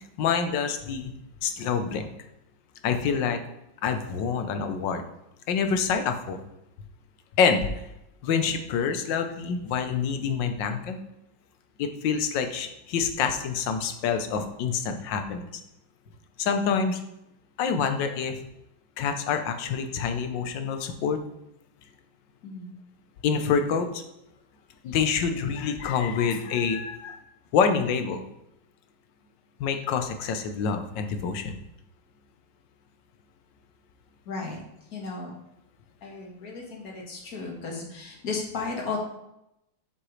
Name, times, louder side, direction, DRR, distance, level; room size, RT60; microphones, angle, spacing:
voice 1, 0.2-1.1 1.4-2.1 2.8-3.4 3.8-5.0 5.5-6.4 7.4-7.8 8.2-11.0 11.8-15.5 16.4-17.0 17.6-18.4 19.0-21.2 23.2-24.0 24.8-27.2 27.5-28.2 29.6-31.6, left 6 dB, 75° left, 7 dB, 1.4 m, -26 dB
voice 2, 22.4-22.7 34.3-34.6 34.9-35.3 36.0-39.0, left 4 dB, 50° left, 0 dB, 1.9 m, -34 dB
7.9 x 5.9 x 3.2 m, 0.84 s
omnidirectional pair, 2.1 m